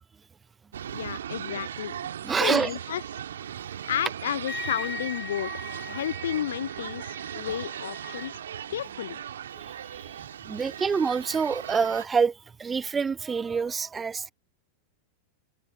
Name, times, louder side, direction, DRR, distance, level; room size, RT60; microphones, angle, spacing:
sound 1, 0.7-12.1, right 9 dB, 65° right, 2.3 m, -38 dB
voice 1, 0.9-2.0 2.4-3.0 3.9-5.5 5.9-8.4 8.7-9.2, left 10 dB, 60° left, 0.8 m, -32 dB
voice 2, 2.2-2.7 9.6-10.2 10.5-14.3, right 5 dB, 15° right, 0.5 m, -27 dB
Wind instrument woodwind instrument, 4.5-8.3, left 5 dB, 15° left, 3.5 m, -40 dB
figure-of-eight pair, 90°, 0 cm